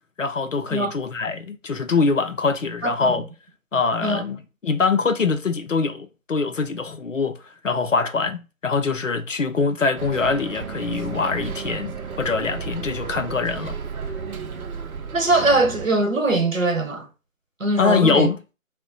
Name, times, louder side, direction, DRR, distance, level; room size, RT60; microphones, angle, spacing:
voice 1, 0.2-3.3 3.7-4.4 4.6-7.4 7.6-13.8 17.8-18.4, left 4 dB, 65° left, 0.5 m, -23 dB
voice 2, 2.8-3.2 4.0-4.2 15.1-17.1 17.6-18.3, right 2 dB, 65° right, 0.9 m, -21 dB
Bus, 10.0-15.9, right 5 dB, 85° right, 0.6 m, -33 dB
2.7 x 2.1 x 3.8 m
figure-of-eight pair, 180°, 42 cm